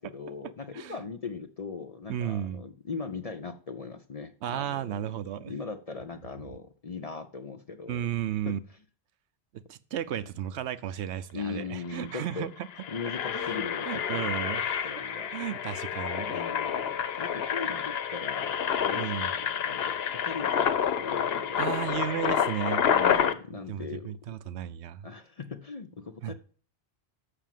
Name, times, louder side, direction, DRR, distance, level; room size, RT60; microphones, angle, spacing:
voice 1, 0.0-4.9 5.4-8.1 8.5-8.6 11.3-12.5 12.9-14.3 14.8-15.4 16.3-22.2 22.9-24.2 25.0-26.3, left 5 dB, 45° left, 7 dB, 0.5 m, -39 dB
voice 2, 2.1-2.6 4.4-5.5 7.9-8.6 9.7-12.7 13.3-13.6 13.8-14.9 15.3-16.4 18.9-19.3 21.6-22.8 23.5-25.1 26.2-26.3, right 10 dB, 75° right, 14 dB, 0.9 m, -34 dB
Engine, 11.6-11.7 11.9-12.2 12.6-23.3, left 8 dB, 65° left, 0.9 m, -29 dB
6.8 x 6.1 x 7.5 m, 0.42 s
omnidirectional pair, 1.2 m